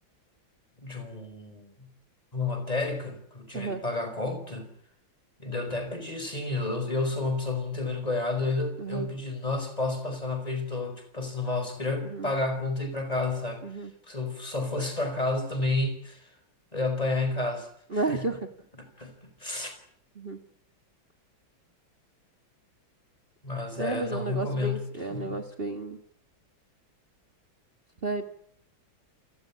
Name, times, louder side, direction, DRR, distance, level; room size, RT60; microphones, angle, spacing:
voice 1, 0.8-1.7 2.3-4.7 5.4-13.6 14.1-16.3 16.7-18.2 19.0-19.7 23.4-24.8 25.1-25.4, left 3 dB, 20° left, 7 dB, 4.9 m, -31 dB
voice 2, 17.9-18.5 20.2-20.4 23.8-26.0 28.0-28.2, right 3 dB, 30° right, 7 dB, 1.7 m, -32 dB
29.0 x 17.0 x 8.5 m, 0.67 s
omnidirectional pair, 2.2 m